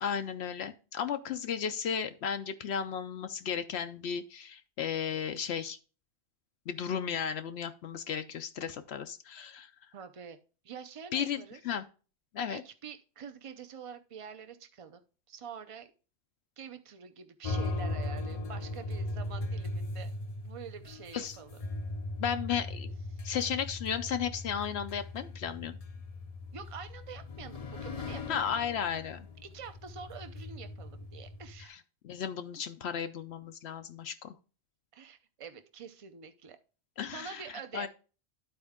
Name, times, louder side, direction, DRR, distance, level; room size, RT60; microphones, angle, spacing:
voice 1, 0.0-5.8 6.7-9.7 11.1-11.8 12.3-12.6 21.1-21.4 22.2-23.0 23.2-25.8 28.3-29.3 31.6-31.8 32.0-34.3 37.0-37.9, left 8 dB, 75° left, 8 dB, 0.9 m, -34 dB
voice 2, 9.9-10.4 10.6-11.6 12.5-15.0 15.3-15.9 16.6-20.1 20.4-21.6 23.1-23.2 26.5-28.4 29.4-31.7 34.9-36.6 37.1-37.9, right 7 dB, 35° right, 8 dB, 0.7 m, -46 dB
sound 1, 17.4-31.6, left 2 dB, 40° left, 0.6 m, -39 dB
11.5 x 4.4 x 3.6 m, 0.36 s
omnidirectional pair, 1.1 m